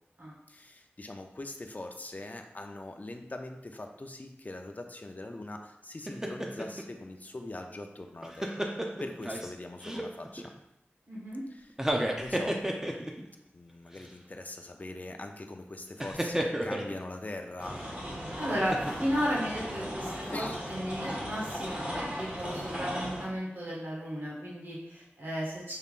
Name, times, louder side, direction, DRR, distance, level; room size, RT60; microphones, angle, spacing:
voice 1, 0.5-8.7 9.0-10.5 11.5-11.7 12.2-12.6 13.5-17.9 20.3-20.6, left 2 dB, 40° left, 4 dB, 0.5 m, -42 dB
sound 1, 6.1-6.8 8.0-9.5 9.8-10.5 11.7-13.3 13.9-14.1 16.0-17.0 18.5-19.2 19.6-19.8, right 1 dB, 10° right, 0.6 m, -32 dB
voice 2, 11.1-11.4 18.3-25.7, equal, 55° right, -6 dB, 1.6 m, -34 dB
sound 2, 17.6-23.2, equal, 30° right, 1.6 m, -37 dB
5.5 x 3.5 x 2.5 m, 0.87 s
wide cardioid pair, 45°, 4 cm